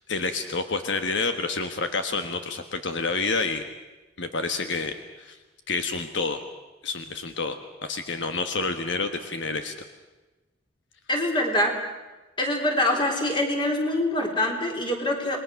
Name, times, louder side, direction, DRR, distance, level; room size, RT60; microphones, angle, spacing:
voice 1, 0.1-3.6 4.2-5.4 5.7-6.4 6.8-9.7, left 3 dB, 70° left, 7 dB, 1.3 m, -29 dB
voice 2, 11.1-11.8 12.4-15.4, left 1 dB, 25° left, 2 dB, 3.6 m, -24 dB
28.0 x 21.0 x 6.5 m, 1.1 s
head